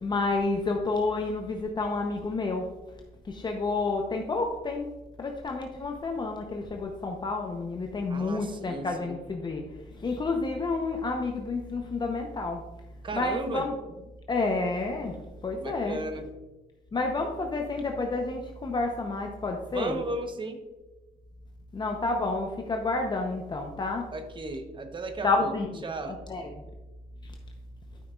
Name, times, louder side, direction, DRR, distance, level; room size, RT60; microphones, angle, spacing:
voice 1, 0.0-2.6 3.2-4.9 5.2-9.6 9.9-12.6 13.1-13.7 14.3-16.0 16.9-20.0 21.7-24.0 25.2-26.6 27.2-27.3, left 3 dB, 25° left, 3 dB, 0.8 m, -30 dB
voice 2, 8.1-9.2 13.0-13.7 15.6-16.3 19.7-20.6 24.1-25.5 25.8-26.2, right 2 dB, 30° right, 7 dB, 1.0 m, -35 dB
12.0 x 6.1 x 2.4 m, 1.1 s
cardioid pair, 110°, 17 cm